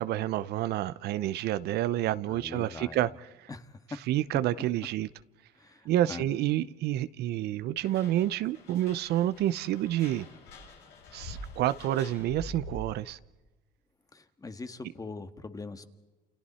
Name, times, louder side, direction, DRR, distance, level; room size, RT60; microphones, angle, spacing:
voice 1, 0.0-3.1 3.4-3.5 4.1-5.1 5.8-10.3 11.1-13.2, right 13 dB, 75° right, 15 dB, 0.7 m, -29 dB
voice 2, 2.3-3.1 3.5-3.8 5.6-6.3 14.1-15.8, left 3 dB, 20° left, 9 dB, 1.6 m, -42 dB
sound 1, 7.8-13.0, left 1 dB, 80° left, 7.6 m, -46 dB
29.5 x 29.0 x 4.3 m, 1.2 s
cardioid pair, 110°, 17 cm